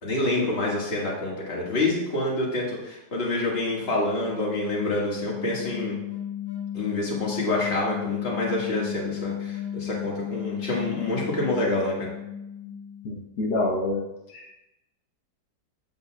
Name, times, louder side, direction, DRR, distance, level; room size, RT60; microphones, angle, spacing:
voice 1, 0.0-6.0 6.7-12.1, left 2 dB, 40° left, -4 dB, 2.0 m, -27 dB
sound 1, 3.4-13.5, left 10 dB, 35° right, 1.3 m, -35 dB
voice 2, 13.0-14.0 14.3-14.6, left 2 dB, 75° left, -4 dB, 1.7 m, -27 dB
8.1 x 7.7 x 2.3 m, 0.92 s
omnidirectional pair, 1.8 m